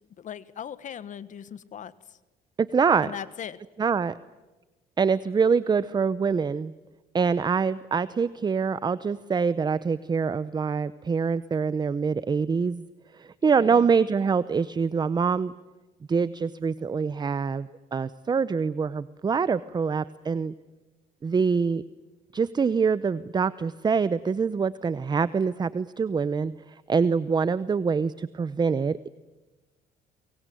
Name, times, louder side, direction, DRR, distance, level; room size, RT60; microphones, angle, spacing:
voice 1, 0.2-2.2 3.0-3.6 13.6-13.9, left 9 dB, 50° left, 16 dB, 1.4 m, -39 dB
voice 2, 2.6-3.1 3.8-4.1 5.0-6.7 7.1-12.9 13.1-15.5 16.1-20.5 21.2-21.8 22.3-29.1, right 5 dB, 25° right, 16 dB, 0.8 m, -25 dB
24.5 x 23.0 x 9.3 m, 1.1 s
cardioid pair, 110°, 17 cm